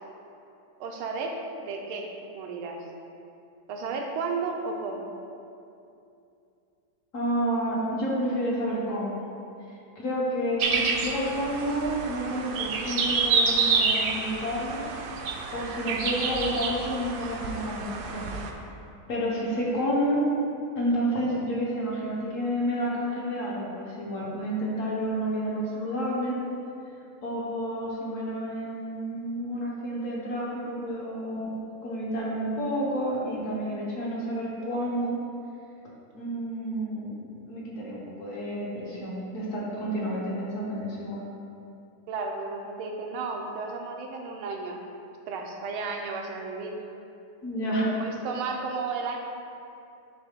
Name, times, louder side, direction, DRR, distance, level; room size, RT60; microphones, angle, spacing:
voice 1, 0.8-2.8 3.7-5.1 42.1-44.8 45.3-46.8 48.0-49.2, right 4 dB, 85° right, 2 dB, 1.6 m, -33 dB
voice 2, 7.1-9.2 9.7-14.8 15.5-18.3 19.1-20.3 20.8-26.4 27.2-31.6 31.8-35.2 36.1-41.3 47.4-48.0, equal, 50° left, -5 dB, 1.2 m, -30 dB
sound 1, 10.6-18.5, right 4 dB, 70° right, 1.1 m, -28 dB
10.0 x 3.5 x 3.7 m, 2.6 s
omnidirectional pair, 2.3 m